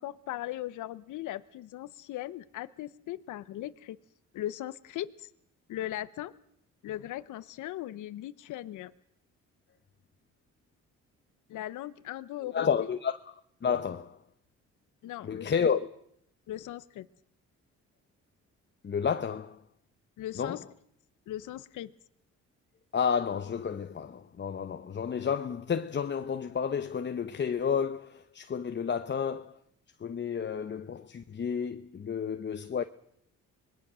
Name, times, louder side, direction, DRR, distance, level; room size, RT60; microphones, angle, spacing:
voice 1, 0.0-4.0 4.3-5.3 5.7-6.3 6.8-8.9 11.5-12.7 15.0-15.6 16.5-17.1 20.2-20.6 21.3-21.9, left 13 dB, 80° left, 0.9 m, -38 dB
voice 2, 12.5-13.2 13.6-14.2 15.2-15.9 18.8-19.6 20.4-20.6 22.9-29.6 30.0-32.8, left 7 dB, 35° left, 1.0 m, -31 dB
26.0 x 20.5 x 6.3 m
cardioid pair, 90°, 30 cm